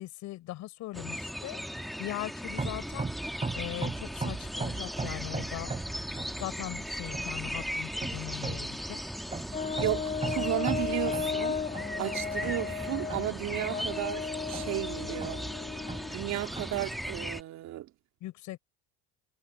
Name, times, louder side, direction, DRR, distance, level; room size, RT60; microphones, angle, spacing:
voice 1, 0.0-3.1 3.5-5.7 6.4-9.1 18.2-18.6, left 16 dB, 60° left, 5.6 m, -40 dB
sound 1, 0.9-17.4, equal, ahead, 2.0 m, -38 dB
sound 2, 2.5-17.2, right 3 dB, 15° right, 7.6 m, -39 dB
Brass instrument, 9.5-16.2, left 6 dB, 25° left, 2.2 m, -35 dB
voice 2, 9.8-11.6 12.0-15.4 16.1-17.9, right 15 dB, 60° right, 2.8 m, -34 dB
supercardioid pair, 105°, 32 cm